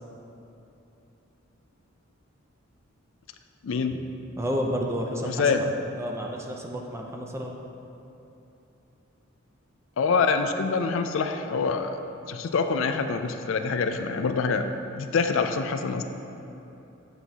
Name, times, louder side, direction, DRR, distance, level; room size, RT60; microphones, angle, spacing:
voice 1, 3.6-4.0 5.3-5.7 10.0-12.0 12.3-14.7 15.0-16.0, left 5 dB, 65° left, 7 dB, 0.4 m, -25 dB
voice 2, 4.4-5.7 6.0-7.5, equal, 15° right, 0 dB, 0.6 m, -30 dB
8.1 x 7.1 x 2.9 m, 2.9 s
head